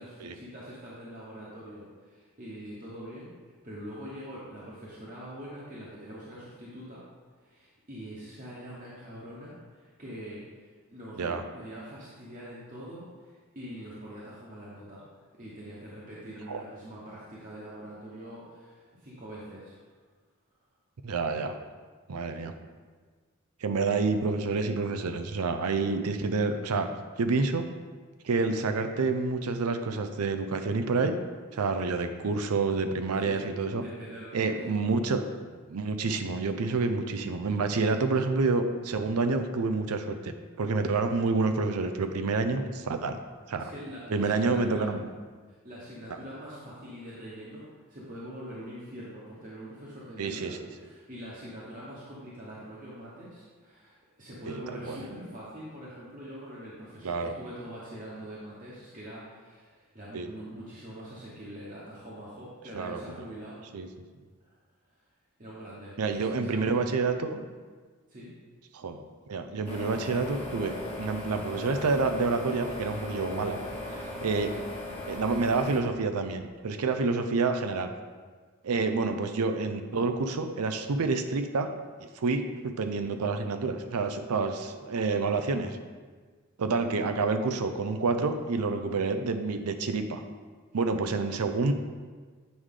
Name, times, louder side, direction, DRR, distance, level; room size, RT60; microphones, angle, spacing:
voice 1, 0.0-7.0 7.4-15.0 15.4-19.8 33.2-33.4 33.7-34.8 37.8-38.1 43.6-44.9 45.6-63.6 64.4-64.5 65.4-66.7 68.1-68.3 78.7-78.9, equal, 35° right, -7 dB, 1.1 m, -44 dB
voice 2, 21.0-21.5 22.1-22.5 23.6-26.9 27.2-27.7 28.2-31.2 31.5-33.8 34.3-35.2 35.5-43.2 43.5-43.7 44.1-45.0 50.2-50.6 54.5-55.0 57.0-57.3 60.1-60.3 62.7-63.0 63.7-63.9 66.0-67.4 68.7-73.6 73.9-74.5 75.1-77.9 78.6-81.7 82.0-85.8 86.6-90.2 90.7-91.7, right 4 dB, 90° right, 8 dB, 0.5 m, -28 dB
sound 1, 69.7-75.8, left 1 dB, 25° left, 1.1 m, -38 dB
8.3 x 4.8 x 3.8 m, 1.5 s
head